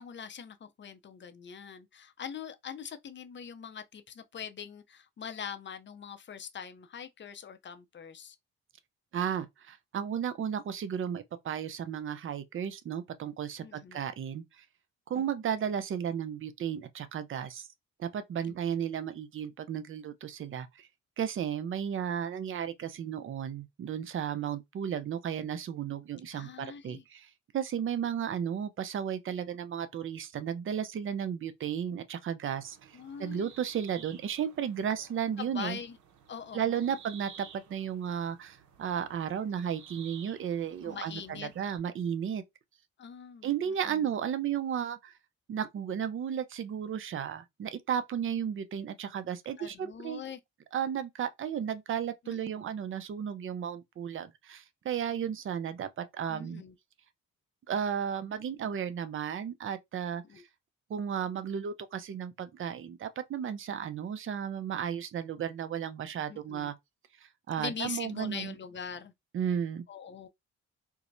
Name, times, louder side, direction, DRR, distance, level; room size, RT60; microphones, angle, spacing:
voice 1, 0.0-8.4 13.6-14.0 15.1-15.3 18.4-18.6 26.3-27.0 32.9-33.5 35.4-36.0 36.3-36.8 40.8-41.5 43.0-43.5 43.9-44.1 49.6-50.4 52.2-52.4 56.3-56.7 60.3-60.4 66.3-66.7 67.6-69.1 69.9-70.3, left 7 dB, 40° left, 0.6 m, -42 dB
voice 2, 9.1-14.6 15.1-17.7 18.0-20.9 21.2-32.9 33.2-35.8 36.5-42.4 43.4-45.1 45.5-50.2 50.7-56.6 57.7-60.2 60.9-66.7 67.5-68.6 69.3-69.8, right 8 dB, 45° right, 0.6 m, -34 dB
sound 1, 32.5-41.8, right 7 dB, 75° right, 0.8 m, -54 dB
4.5 x 2.1 x 2.6 m
cardioid pair, 90°, 30 cm